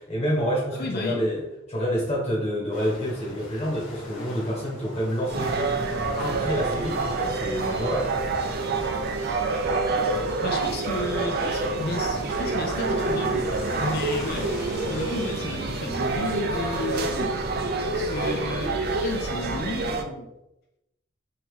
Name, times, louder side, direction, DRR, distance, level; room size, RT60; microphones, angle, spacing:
voice 1, 0.0-1.4 1.7-5.8 6.2-8.1, equal, 35° left, -4 dB, 1.4 m, -28 dB
voice 2, 0.7-1.3 10.4-13.5 13.8-14.5 14.9-17.3 17.9-20.3, left 2 dB, 55° left, 3 dB, 0.4 m, -33 dB
sound 1, 2.7-18.3, left 1 dB, 90° left, 1.2 m, -42 dB
sound 2, 5.2-20.0, right 3 dB, 50° right, 0.4 m, -27 dB
2.9 x 2.7 x 3.7 m, 0.90 s
head